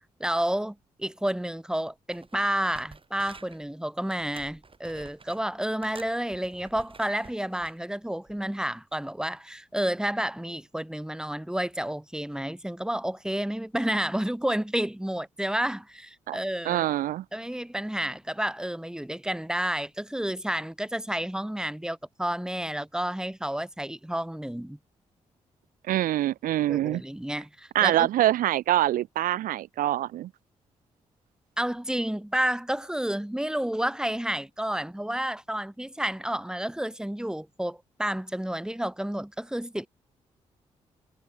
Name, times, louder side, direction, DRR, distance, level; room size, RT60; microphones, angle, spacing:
voice 1, 0.2-16.9 17.3-24.8 26.7-28.1 31.6-39.9, right 1 dB, 5° right, 1.6 m, -30 dB
sound 1, 1.7-1.8 2.1-3.7 4.1-5.4 5.8-7.8 8.3-8.5, right 4 dB, 35° right, 5.4 m, -50 dB
voice 2, 16.7-17.2 25.9-27.0 27.7-30.3, right 13 dB, 70° right, 0.4 m, -25 dB
hypercardioid pair, 40°, 15 cm